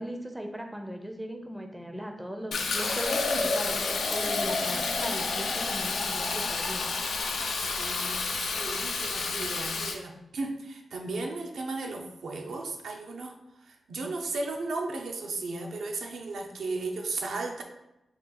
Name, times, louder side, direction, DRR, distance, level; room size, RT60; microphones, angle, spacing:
voice 1, 0.0-6.9, equal, 5° right, 4 dB, 0.4 m, -38 dB
Fill (with liquid), 2.5-10.0, left 4 dB, 90° left, 0.5 m, -30 dB
voice 2, 7.4-8.3 8.6-13.3 13.7-17.6, right 3 dB, 85° right, 2 dB, 0.6 m, -35 dB
4.1 x 2.5 x 3.8 m, 0.91 s
wide cardioid pair, 115°, 0 cm